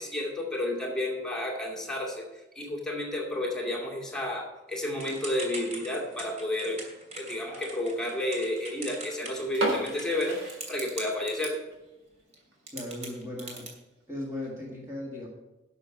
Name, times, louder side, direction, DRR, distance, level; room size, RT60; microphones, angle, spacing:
voice 1, 0.0-2.3 2.6-6.8 7.1-11.6, left 1 dB, 5° left, -2 dB, 2.3 m, -31 dB
Typing / Telephone, 5.0-11.5 12.3-12.4 12.7-13.7, right 2 dB, 40° right, 2.8 m, -41 dB
sound 1, 9.5-11.4 11.7-11.8 12.4-12.5 12.9-13.0 13.3-13.4 14.1-14.5, right 1 dB, 80° right, 3.8 m, -34 dB
voice 2, 12.7-13.7 14.1-15.3, left 1 dB, 15° right, -4 dB, 1.8 m, -37 dB
11.5 x 6.5 x 6.0 m, 1.0 s
head